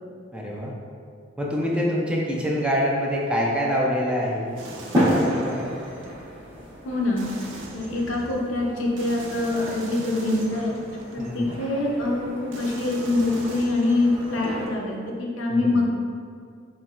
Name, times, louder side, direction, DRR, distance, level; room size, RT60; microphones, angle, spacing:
voice 1, 0.3-0.7 1.4-4.6 4.9-5.7 11.2-11.5 15.5-15.8, equal, 5° right, -4 dB, 0.4 m, -25 dB
sound 1, 4.4-14.7, equal, 25° right, 1.1 m, -31 dB
sound 2, 4.6-6.1 7.2-8.4 9.0-11.5 12.5-14.5, right 2 dB, 70° right, 0.5 m, -41 dB
voice 2, 6.8-7.3 7.7-10.7 11.1-15.9, left 2 dB, 80° left, -1 dB, 0.6 m, -24 dB
4.4 x 3.1 x 2.4 m, 2.2 s
head